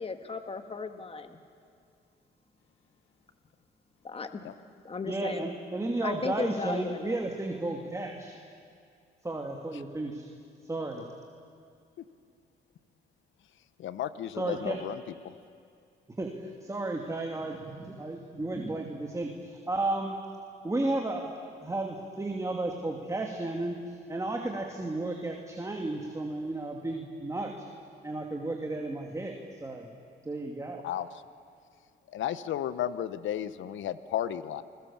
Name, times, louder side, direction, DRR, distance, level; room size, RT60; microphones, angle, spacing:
voice 1, 0.0-1.4 4.0-4.4 4.8-5.5 6.0-7.2, left 4 dB, 30° left, 7 dB, 1.8 m, -35 dB
voice 2, 5.1-8.4 9.2-10.3 10.6-11.0 14.4-14.8 16.2-20.2 20.6-23.8 24.1-27.6 28.0-29.3 29.6-29.9 30.2-30.8, right 2 dB, 15° right, 1 dB, 2.7 m, -33 dB
voice 3, 13.8-15.3 30.8-31.2 32.1-34.6, left 10 dB, 75° left, 13 dB, 1.1 m, -33 dB
29.5 x 21.5 x 7.3 m, 2.4 s
cardioid pair, 90°, 20 cm